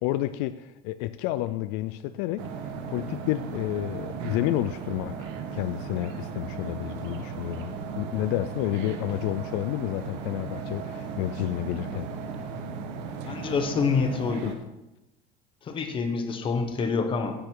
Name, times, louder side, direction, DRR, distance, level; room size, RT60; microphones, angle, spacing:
voice 1, 0.0-2.5 2.9-12.1 14.4-14.6, left 15 dB, 70° left, 12 dB, 0.4 m, -30 dB
sound 1, 2.4-14.5, right 5 dB, 65° right, 1.3 m, -36 dB
voice 2, 13.2-14.5 15.7-17.3, left 5 dB, 25° left, 6 dB, 1.1 m, -27 dB
9.8 x 9.0 x 4.6 m, 0.97 s
cardioid pair, 170°, 21 cm